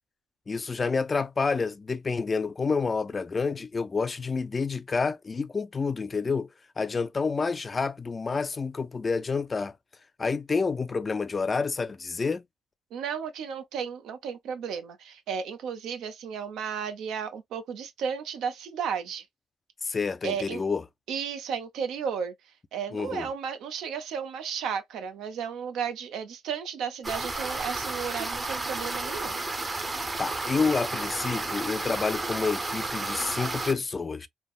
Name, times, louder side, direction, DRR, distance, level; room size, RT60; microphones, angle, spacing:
voice 1, 0.5-6.5 6.8-9.7 10.2-12.4 19.8-20.8 22.9-23.3 30.2-34.3, left 4 dB, 30° left, 0.3 m, -29 dB
voice 2, 12.9-19.2 19.9-20.0 20.2-20.6 21.1-22.3 22.7-29.4, right 7 dB, 80° right, 0.6 m, -33 dB
sound 1, 27.0-33.7, right 2 dB, 25° right, 0.6 m, -32 dB
3.3 x 2.1 x 2.3 m
cardioid pair, 90°, 0 cm